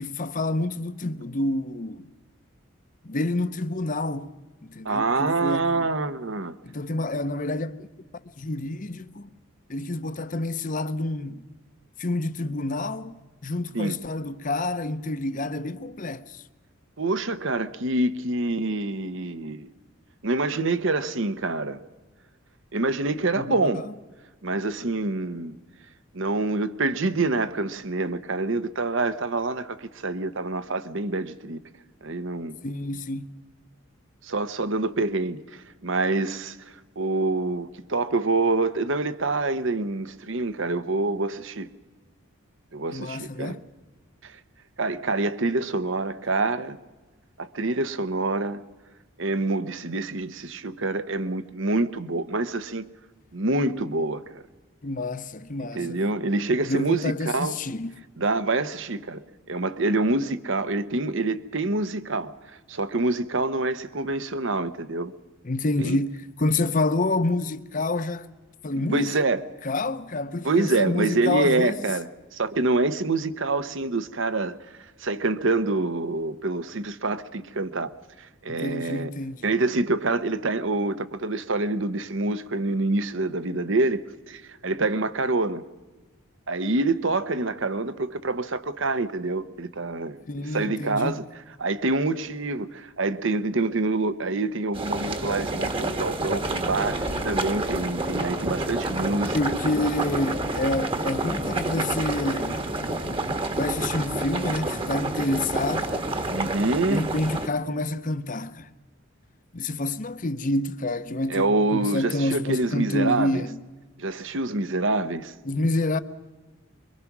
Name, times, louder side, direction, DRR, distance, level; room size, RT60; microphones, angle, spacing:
voice 1, 0.0-2.1 3.0-5.9 6.6-7.9 8.4-9.3 9.7-11.5 12.0-16.4 23.3-23.9 32.6-33.3 42.9-43.6 54.8-56.0 56.7-57.9 65.4-68.3 68.6-69.2 69.6-71.9 78.5-79.4 90.3-91.1 99.3-102.6 103.6-105.9 106.9-108.7 109.5-113.6 115.4-116.0, left 2 dB, 40° left, 0.8 m, -28 dB
voice 2, 4.8-6.5 13.7-14.0 17.0-19.7 20.2-21.8 22.7-23.8 24.4-25.5 26.1-31.6 32.0-32.6 34.2-41.7 42.7-43.6 44.2-44.4 44.8-46.8 47.4-48.6 49.2-52.9 53.3-54.4 55.7-57.6 58.2-59.2 59.5-65.1 65.8-66.0 68.9-69.4 70.4-74.5 75.0-77.9 78.2-79.1 79.4-85.6 86.5-91.2 91.6-99.4 106.3-107.0 111.3-113.4 114.0-115.3, right 2 dB, 65° right, 1.0 m, -26 dB
sound 1, 94.7-107.5, right 2 dB, 25° right, 1.3 m, -29 dB
24.5 x 23.5 x 6.1 m
head